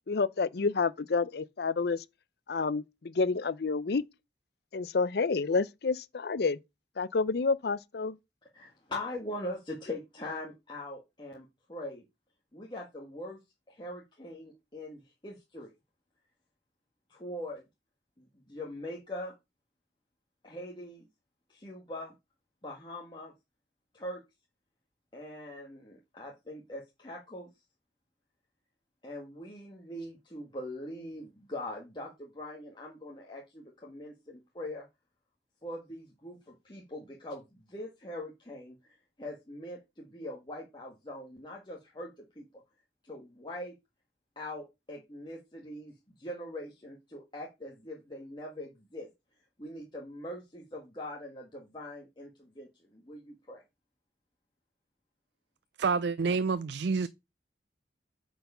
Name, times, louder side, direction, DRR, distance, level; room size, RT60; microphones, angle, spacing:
voice 1, 0.1-2.0 2.5-4.0 4.7-6.6 7.0-8.2, left 4 dB, 60° left, 0.5 m, -29 dB
voice 2, 8.5-12.0 12.5-13.4 13.7-15.7 17.1-17.6 18.2-19.3 20.4-21.1 21.5-22.1 22.6-23.3 23.9-24.2 25.1-27.5 29.0-34.8 35.6-42.5 43.0-43.8 44.3-45.9 46.2-49.1 49.6-53.6, left 1 dB, 25° left, 1.6 m, -42 dB
voice 3, 55.8-57.1, right 4 dB, 70° right, 0.4 m, -28 dB
9.1 x 4.7 x 5.5 m
head